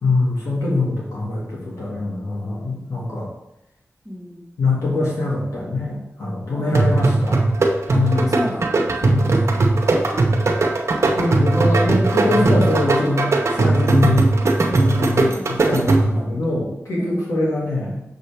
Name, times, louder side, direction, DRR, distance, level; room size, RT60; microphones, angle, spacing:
voice 1, 0.0-3.3 4.6-7.4 7.9-8.6 9.0-9.4 11.2-14.3 14.6-18.0, left 2 dB, 85° left, -6 dB, 2.0 m, -23 dB
voice 2, 4.0-4.4 6.5-7.2 7.9-8.0 8.4-10.3 15.2-15.6 16.1-16.6 17.0-17.6, equal, 5° right, -1 dB, 1.4 m, -34 dB
sound 1, 6.7-16.3, right 2 dB, 60° right, 0.8 m, -18 dB
6.5 x 5.5 x 3.4 m, 0.84 s
wide cardioid pair, 75°, 5 cm